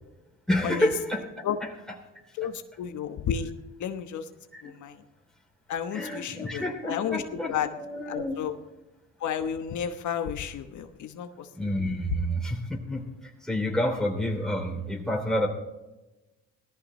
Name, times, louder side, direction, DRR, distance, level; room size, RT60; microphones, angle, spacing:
voice 1, 0.5-1.7 4.5-4.7 5.9-8.5 11.5-15.5, equal, ahead, 1 dB, 3.3 m, -29 dB
voice 2, 2.4-3.5 3.8-4.3 4.6-5.0 5.7-7.7 8.1-8.5 9.2-11.5, left 8 dB, 75° left, 7 dB, 1.2 m, -32 dB
18.5 x 14.0 x 3.2 m, 1.1 s
cardioid pair, 90°, 30 cm